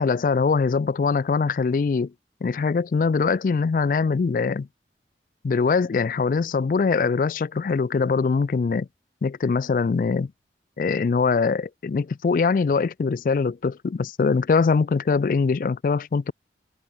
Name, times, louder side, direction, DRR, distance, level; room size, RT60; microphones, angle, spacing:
voice 1, 0.0-2.1 2.4-4.7 5.4-8.9 9.2-10.3 10.8-16.3, left 4 dB, 50° left, 0.3 m, -22 dB
head